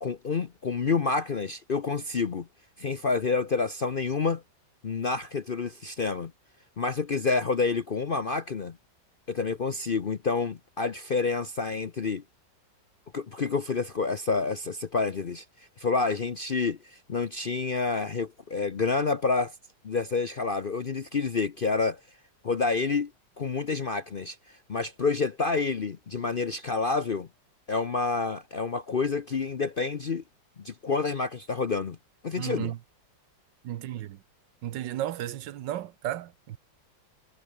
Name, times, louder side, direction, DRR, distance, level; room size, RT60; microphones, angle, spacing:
voice 1, 0.0-2.5 2.8-4.4 4.8-6.3 6.8-8.8 9.3-12.2 13.1-15.4 15.8-19.5 19.8-22.0 22.4-23.1 23.4-24.4 24.7-27.3 27.7-30.2 30.6-32.0 32.2-32.7, left 4 dB, 45° left, 0.7 m, -28 dB
voice 2, 32.4-32.8 33.6-34.2 34.6-36.6, right 12 dB, 80° right, 1.5 m, -34 dB
omnidirectional pair, 1.9 m